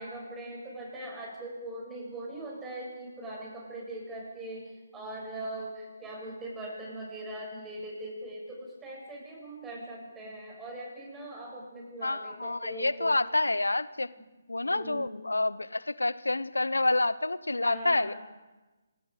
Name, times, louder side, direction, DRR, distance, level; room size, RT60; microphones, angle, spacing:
voice 1, 0.0-13.2 14.7-15.2 17.6-18.2, right 1 dB, 10° right, -3 dB, 7.5 m, -41 dB
voice 2, 12.0-14.1 14.5-18.1, left 2 dB, 90° left, 18 dB, 0.7 m, -28 dB
28.0 x 19.0 x 5.1 m, 1.2 s
figure-of-eight pair, 150°, 0 cm